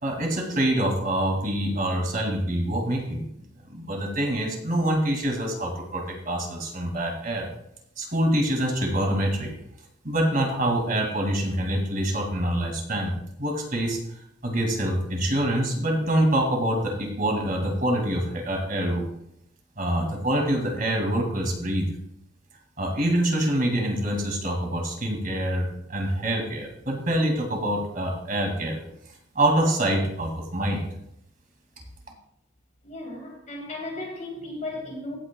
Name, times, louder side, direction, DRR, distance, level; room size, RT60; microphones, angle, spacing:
voice 1, 0.0-3.2 3.7-7.5 8.0-9.5 10.0-14.0 14.4-19.0 19.8-21.9 22.8-28.8 29.3-30.9, right 1 dB, 45° right, 2.4 m, -25 dB
voice 2, 32.8-35.2, left 2 dB, 40° left, 3.1 m, -35 dB
16.0 x 8.9 x 2.3 m
head